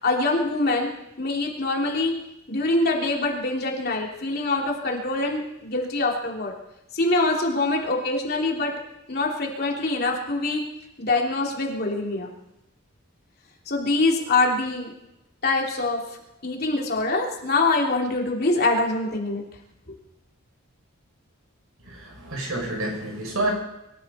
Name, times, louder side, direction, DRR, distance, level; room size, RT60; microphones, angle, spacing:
voice 1, 0.0-0.9 1.2-2.1 2.5-6.5 6.9-8.7 9.1-10.6 11.0-12.3 13.7-14.9 15.4-16.0 16.4-19.4, left 2 dB, 45° left, -1 dB, 3.1 m, -24 dB
voice 2, 21.8-23.5, right 2 dB, 90° right, 0 dB, 6.9 m, -29 dB
23.5 x 13.5 x 4.3 m, 0.88 s
head